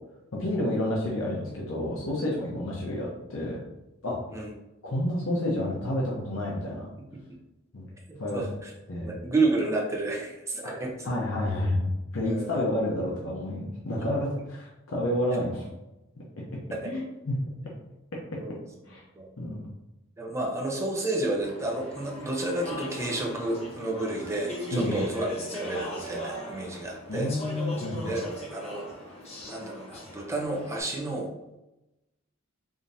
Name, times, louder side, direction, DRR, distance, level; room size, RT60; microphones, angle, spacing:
voice 1, 0.3-3.6 4.0-4.2 4.8-6.8 7.7-7.8 8.2-8.4 8.9-9.1 11.0-15.6 16.8-17.4 18.9-19.0 19.4-19.7 24.7-25.0 27.1-28.1, left 1 dB, 70° left, -4 dB, 0.8 m, -29 dB
voice 2, 8.1-8.7 9.0-11.1 12.2-12.6 14.0-14.1 18.4-18.6 19.1-19.3 20.2-27.3 28.0-28.2 28.5-28.9 29.4-31.3, right 2 dB, 15° right, -1 dB, 0.7 m, -31 dB
Speech / Chatter, 21.4-30.8, left 1 dB, 30° left, 0.9 m, -39 dB
5.0 x 2.7 x 2.6 m, 0.96 s
head